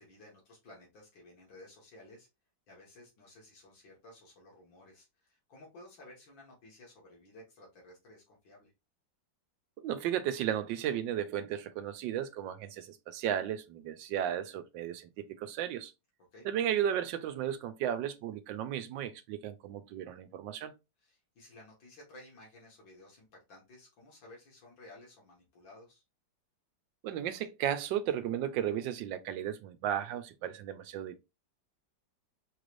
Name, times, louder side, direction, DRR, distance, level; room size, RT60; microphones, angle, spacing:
voice 1, 0.0-2.3 2.7-8.7 16.3-16.5 21.0-26.0, left 1 dB, 80° left, 2.4 m, -55 dB
voice 2, 9.8-15.9 16.4-20.7 27.0-31.2, right 10 dB, 80° right, 1.3 m, -34 dB
5.3 x 3.2 x 2.5 m
omnidirectional pair, 2.0 m